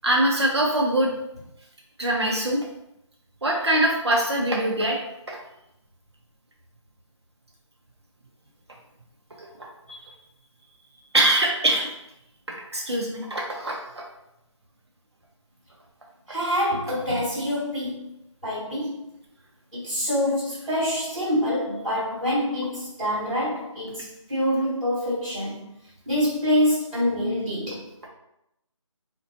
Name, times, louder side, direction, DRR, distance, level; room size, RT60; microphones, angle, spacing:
voice 1, 0.0-1.1 2.0-2.6 3.4-5.0 5.3-5.4 9.4-10.1 11.1-11.9 12.5-14.0, right 1 dB, 55° right, -1 dB, 0.6 m, -23 dB
voice 2, 16.3-18.1 18.4-19.0 19.7-25.6 26.0-27.8, equal, ahead, -17 dB, 1.1 m, -26 dB
4.0 x 2.2 x 2.7 m, 0.82 s
figure-of-eight pair, 175°, 16 cm